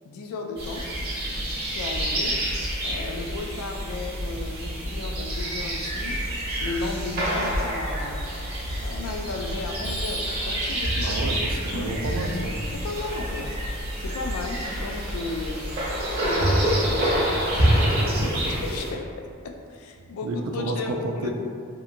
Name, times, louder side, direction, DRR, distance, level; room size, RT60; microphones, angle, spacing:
voice 1, 0.0-0.9 1.7-2.4 2.8-6.3 6.6-8.3 8.8-11.1 11.7-11.9 12.7-13.6 14.0-15.7 16.2-21.3, left 3 dB, 90° left, 4 dB, 0.3 m, -35 dB
sound 1, 0.6-18.9, right 1 dB, 45° right, 0.7 m, -27 dB
Telephone, 9.8-12.3, equal, 5° left, 0.3 m, -46 dB
voice 2, 11.0-12.5 20.2-21.3, right 2 dB, 90° right, 3 dB, 0.3 m, -30 dB
2.7 x 2.5 x 2.5 m, 2.3 s
head